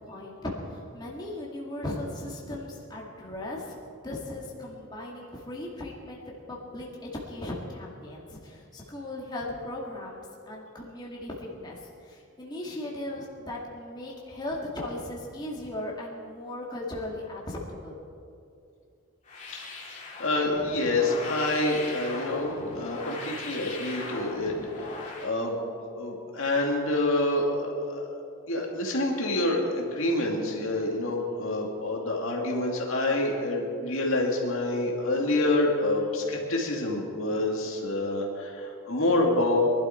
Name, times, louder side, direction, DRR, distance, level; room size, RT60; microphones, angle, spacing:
voice 1, 0.0-3.8 4.0-18.0, left 1 dB, 20° left, -4 dB, 2.2 m, -37 dB
sound 1, 19.2-25.3, left 2 dB, 35° left, 2.6 m, -39 dB
voice 2, 20.2-25.7 25.9-28.2 28.5-39.6, left 2 dB, 65° left, -1 dB, 2.4 m, -27 dB
23.0 x 12.0 x 4.5 m, 2.5 s
head